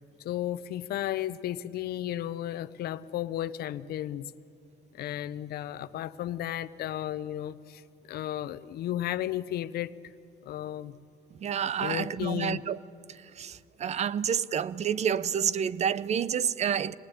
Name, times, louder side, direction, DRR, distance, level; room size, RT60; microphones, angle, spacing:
voice 1, 0.2-4.3 4.9-10.1 10.4-11.0 11.8-12.6, left 12 dB, 70° left, 15 dB, 0.8 m, -34 dB
voice 2, 11.4-12.8 13.1-16.9, right 8 dB, 40° right, 19 dB, 0.7 m, -29 dB
25.5 x 20.0 x 8.8 m, 2.7 s
cardioid pair, 110°, 17 cm